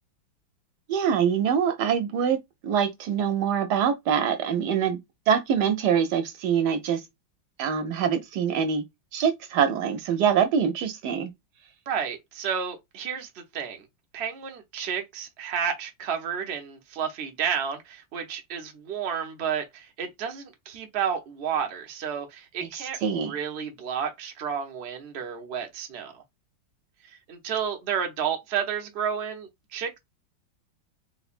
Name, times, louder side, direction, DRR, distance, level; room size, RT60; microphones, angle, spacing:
voice 1, 0.9-5.0 5.3-7.0 7.6-8.8 9.1-11.3 22.7-23.4, right 8 dB, 70° right, 1.0 m, -24 dB
voice 2, 11.9-13.9 14.1-26.2 27.3-30.0, right 7 dB, 85° right, 0.5 m, -31 dB
3.2 x 3.1 x 2.4 m
omnidirectional pair, 2.2 m